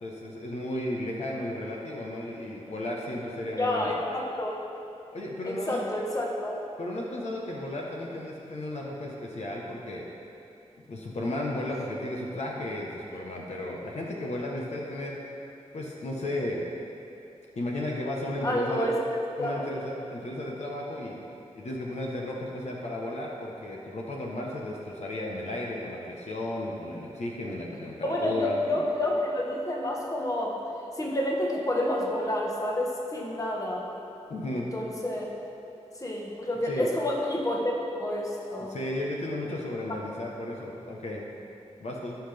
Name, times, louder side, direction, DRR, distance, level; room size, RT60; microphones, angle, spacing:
voice 1, 0.0-3.9 5.1-5.8 6.8-10.0 10.9-15.2 15.7-16.6 17.5-18.9 19.4-21.2 21.5-28.6 34.3-34.7 36.7-36.9 38.7-41.3 41.8-42.2, left 1 dB, 65° left, -2 dB, 1.2 m, -34 dB
voice 2, 3.6-4.6 5.4-6.5 18.4-19.0 19.4-19.7 28.0-30.6 30.9-33.9 34.5-35.3 35.9-38.8, left 1 dB, 30° left, -2 dB, 1.4 m, -29 dB
17.5 x 5.8 x 3.5 m, 2.8 s
wide cardioid pair, 95°, 12 cm